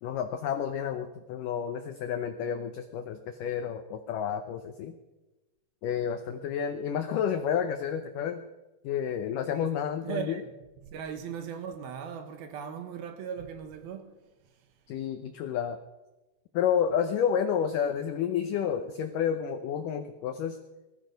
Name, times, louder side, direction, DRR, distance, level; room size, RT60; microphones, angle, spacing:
voice 1, 0.0-4.9 5.8-8.4 8.8-10.4 14.9-15.8 16.5-20.6, left 8 dB, 85° left, 1.9 m, -30 dB
voice 2, 10.0-10.5 10.8-14.2 17.7-18.0, right 7 dB, 70° right, 2.8 m, -38 dB
19.5 x 13.5 x 5.3 m
omnidirectional pair, 4.8 m